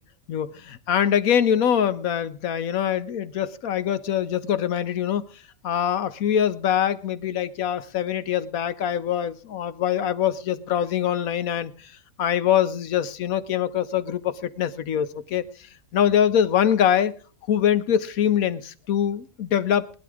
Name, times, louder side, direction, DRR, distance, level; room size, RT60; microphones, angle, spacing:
voice 1, 0.3-5.2 5.6-11.7 12.2-15.4 15.9-17.1 17.5-19.9, left 9 dB, 85° left, 1.3 m, -23 dB
19.0 x 12.0 x 3.6 m
omnidirectional pair, 1.4 m